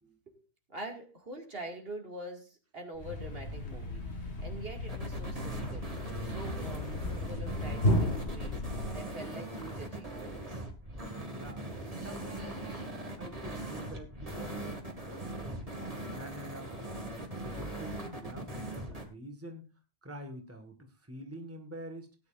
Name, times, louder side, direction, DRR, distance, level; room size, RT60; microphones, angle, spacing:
voice 1, 0.3-5.9 6.2-10.6, right 1 dB, 65° right, 2 dB, 2.5 m, -45 dB
Thump thud, 3.0-9.2, left 1 dB, 85° left, 2.0 m, -34 dB
sound 1, 4.9-19.0, right 1 dB, 35° right, 2.1 m, -40 dB
voice 2, 11.3-11.6 12.0-12.8 13.2-15.8 16.1-16.9 17.2-19.7 20.0-22.2, equal, 15° right, 5 dB, 1.7 m, -47 dB
18.0 x 9.7 x 2.6 m, 0.31 s
omnidirectional pair, 1.1 m